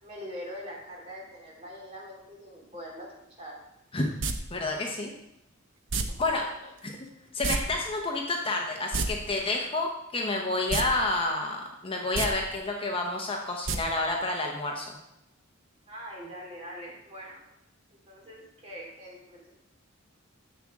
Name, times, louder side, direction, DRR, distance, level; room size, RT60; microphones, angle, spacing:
voice 1, 0.0-3.1 3.4-3.5 6.4-6.7 15.9-17.4 18.1-19.4, equal, 30° right, -3 dB, 2.9 m, -43 dB
sound 1, 4.2-4.3 5.9-6.0 7.4-7.6 7.8-7.9 8.8-9.1 10.7-10.9 11.2-11.3 12.0-12.3 13.7-13.8 14.1-14.2, right 4 dB, 60° right, 0.8 m, -28 dB
voice 2, 4.5-5.1 6.2-6.4 6.8-6.9 7.3-15.0, left 2 dB, 25° left, 1 dB, 0.8 m, -29 dB
10.0 x 7.2 x 3.7 m, 0.85 s
head